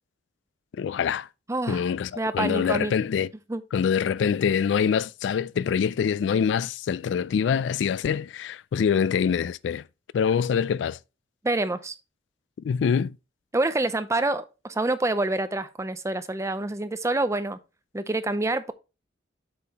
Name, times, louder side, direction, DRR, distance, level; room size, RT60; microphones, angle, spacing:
voice 1, 0.8-1.3 1.7-3.3 3.7-9.8 10.1-11.0 12.6-13.2, left 7 dB, 70° left, 0.3 m, -25 dB
voice 2, 1.5-1.8 2.2-2.9 3.5-3.6 11.4-11.9 13.5-17.6 17.9-18.7, right 2 dB, 15° right, 0.5 m, -27 dB
7.7 x 5.7 x 2.8 m
head